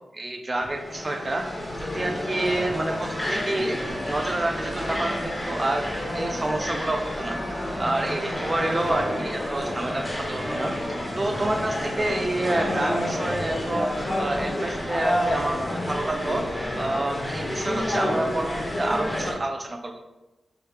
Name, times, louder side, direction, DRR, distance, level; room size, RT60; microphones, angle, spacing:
voice 1, 0.1-1.5 1.8-16.5 16.8-20.0, right 1 dB, 25° right, 5 dB, 0.4 m, -28 dB
sound 1, 0.6-19.3, left 1 dB, 15° left, 0.7 m, -29 dB
4.6 x 2.3 x 3.3 m, 1.0 s
wide cardioid pair, 125°, 0 cm